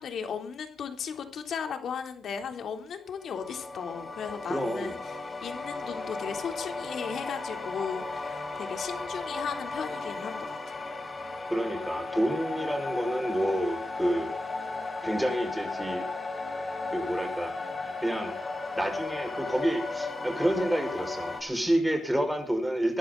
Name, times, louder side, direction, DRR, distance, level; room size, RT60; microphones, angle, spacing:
voice 1, 0.0-10.8, left 7 dB, 60° left, 6 dB, 3.5 m, -36 dB
sound 1, 3.2-21.4, left 3 dB, 25° left, 5.6 m, -35 dB
voice 2, 4.5-4.9 11.5-14.3 15.0-16.1 16.9-17.6 18.0-18.3 18.8-23.0, right 1 dB, 5° right, 4 dB, 5.7 m, -29 dB
23.5 x 11.5 x 4.1 m, 0.37 s
cardioid pair, 90°, 0 cm